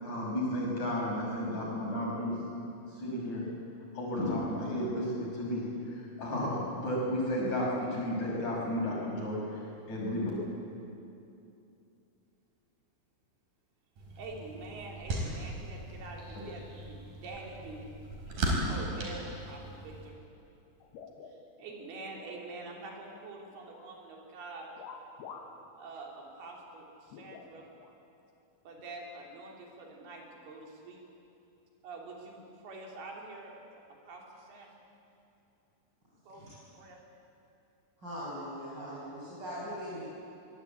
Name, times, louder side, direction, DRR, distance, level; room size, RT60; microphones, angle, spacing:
voice 1, 0.0-2.4 3.0-3.4 3.9-9.6 9.9-10.3, left 1 dB, 50° left, -4 dB, 7.3 m, -33 dB
sound 1, 14.0-20.1, right 1 dB, 60° right, 5.9 m, -37 dB
voice 2, 14.2-17.9 18.7-20.2 21.3-24.7 25.8-27.7 28.6-31.0 31.8-33.5 34.1-34.8 36.3-36.5 36.7-37.0, right 3 dB, 90° right, 0 dB, 5.3 m, -46 dB
sound 2, 20.8-21.9 22.2-23.3 23.7-24.0 24.8-25.6 26.0-26.1 27.1-27.9 28.8-28.9 29.8-30.0, left 5 dB, 90° left, 3.7 m, -49 dB
voice 3, 38.0-40.0, equal, 25° right, -9 dB, 6.6 m, -40 dB
24.5 x 21.0 x 8.6 m, 2.7 s
omnidirectional pair, 4.4 m